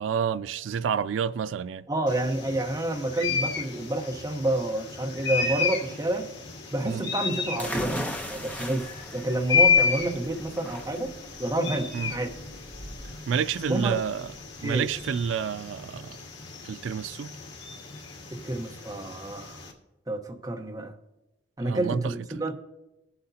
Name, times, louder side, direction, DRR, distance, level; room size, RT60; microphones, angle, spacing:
voice 1, 0.0-1.9 6.8-7.1 11.9-12.1 13.3-14.3 14.6-16.2 16.6-17.3 21.6-22.1, right 7 dB, 90° right, 0.3 m, -29 dB
voice 2, 1.9-6.3 6.7-8.0 8.3-11.1 11.4-12.3 13.7-14.0 14.6-14.8 18.3-19.6 20.1-20.9 21.6-22.5, right 1 dB, 20° right, 1.0 m, -29 dB
sound 1, 2.1-19.7, left 5 dB, 70° left, 2.0 m, -32 dB
sound 2, 7.6-15.1, equal, 10° left, 0.8 m, -38 dB
21.0 x 8.0 x 2.8 m
head